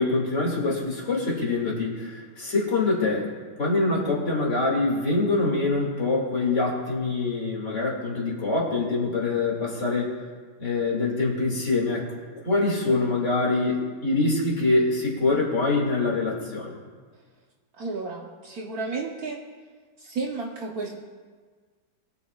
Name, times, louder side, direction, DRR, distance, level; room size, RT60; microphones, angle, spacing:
voice 1, 0.0-3.3 3.6-10.2 10.6-12.1 12.4-16.8, left 3 dB, 40° left, -3 dB, 2.6 m, -24 dB
voice 2, 17.7-19.4 20.0-20.9, right 3 dB, 60° right, 0 dB, 1.3 m, -32 dB
21.0 x 8.4 x 2.4 m, 1.5 s
omnidirectional pair, 2.0 m